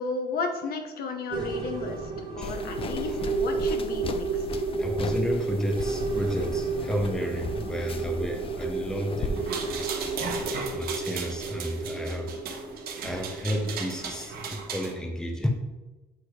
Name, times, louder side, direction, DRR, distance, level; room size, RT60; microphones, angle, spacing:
voice 1, 0.0-4.6, left 4 dB, 65° left, 4 dB, 1.1 m, -33 dB
sound 1, 1.3-14.9, right 4 dB, 30° right, 1.3 m, -32 dB
sound 2, 2.4-10.5, left 3 dB, 35° left, 0.5 m, -37 dB
voice 2, 4.8-9.9 10.7-12.4 13.0-15.5, equal, 5° left, 3 dB, 0.9 m, -32 dB
sound 3, 9.4-14.9, right 5 dB, 65° right, 1.1 m, -36 dB
8.2 x 3.1 x 4.8 m, 1.1 s
cardioid pair, 110°, 17 cm